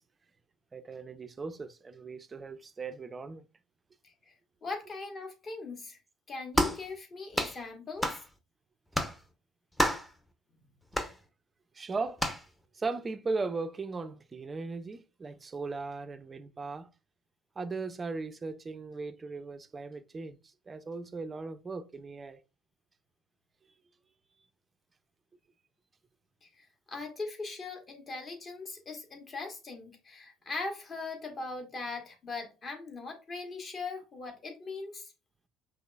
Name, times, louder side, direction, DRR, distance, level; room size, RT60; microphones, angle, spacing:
voice 1, 0.7-3.4 11.7-12.2 12.8-16.9 17.6-20.4 20.7-22.4, right 4 dB, 25° right, 0.4 m, -37 dB
voice 2, 4.0-4.3 4.6-6.0 6.3-8.2 26.4-35.1, left 3 dB, 35° left, 1.2 m, -40 dB
sound 1, 6.5-6.8 7.3-7.6 8.0-8.2 8.9-9.2 9.8-10.1 10.9-11.1 12.2-12.4, equal, 10° left, 0.7 m, -29 dB
5.4 x 3.0 x 2.3 m
figure-of-eight pair, 60°, 0 cm